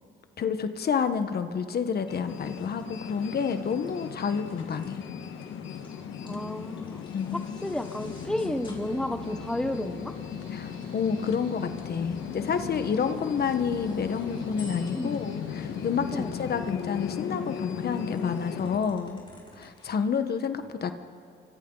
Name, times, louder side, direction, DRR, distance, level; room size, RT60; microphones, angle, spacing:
voice 1, 0.4-5.0 7.1-7.5 10.5-19.2 19.6-20.9, left 6 dB, 55° left, 9 dB, 1.3 m, -29 dB
sound 1, 1.4-9.7 10.6-15.4 17.0-19.9, left 2 dB, 25° left, 6.0 m, -54 dB
sound 2, 2.1-18.8, left 8 dB, 80° left, 1.7 m, -37 dB
voice 2, 6.2-7.0 7.3-10.1 14.9-15.2 16.1-16.3, left 1 dB, 5° left, 8 dB, 1.0 m, -32 dB
Mechanical fan, 8.0-16.5, right 4 dB, 75° right, 5.5 m, -50 dB
29.0 x 25.0 x 4.0 m, 2.4 s
cardioid pair, 90°, 20 cm